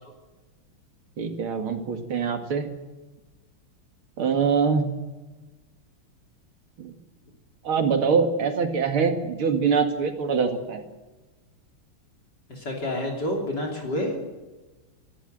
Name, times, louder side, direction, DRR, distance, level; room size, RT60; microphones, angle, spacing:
voice 1, 1.2-2.7 4.2-4.9 6.8-6.9 7.6-10.8, right 5 dB, 80° right, 5 dB, 2.9 m, -24 dB
voice 2, 12.5-14.3, left 1 dB, 50° left, 0 dB, 3.8 m, -29 dB
28.0 x 12.5 x 7.7 m, 1.2 s
omnidirectional pair, 2.3 m